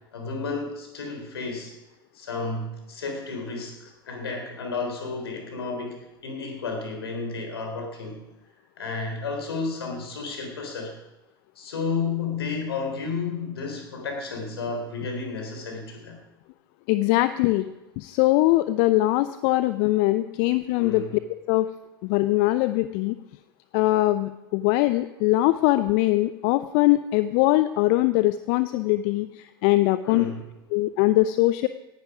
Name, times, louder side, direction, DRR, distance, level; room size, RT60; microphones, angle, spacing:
voice 1, 0.1-1.7 2.1-8.2 8.8-10.9 11.6-16.2 20.8-21.1 30.0-30.4, left 4 dB, 75° left, 3 dB, 3.7 m, -32 dB
voice 2, 16.9-17.7 18.0-21.0 21.5-21.7 22.0-23.2 23.7-30.3 30.7-31.7, left 17 dB, 50° left, 13 dB, 0.6 m, -22 dB
18.0 x 10.5 x 4.9 m, 0.98 s
figure-of-eight pair, 80°, 13 cm